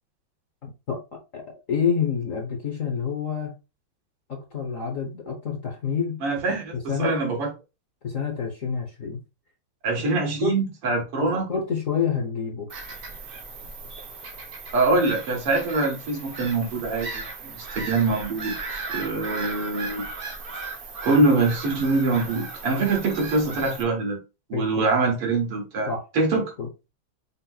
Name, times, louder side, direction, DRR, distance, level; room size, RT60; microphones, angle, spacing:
voice 1, 0.6-3.5 4.3-6.2 6.7-7.2 8.0-9.2 10.4-10.5 11.2-12.7 24.5-24.7 25.9-26.1 26.6-26.7, left 6 dB, 55° left, 1.0 m, -28 dB
voice 2, 6.2-6.7 7.0-7.5 9.8-11.5 14.7-20.1 21.0-24.2 24.5-26.4, right 3 dB, 90° right, 2.7 m, -24 dB
Bird vocalization bird call bird song / Gull seagull, 12.7-23.8, right 3 dB, 60° right, 0.5 m, -37 dB
5.7 x 2.0 x 3.9 m
omnidirectional pair, 2.4 m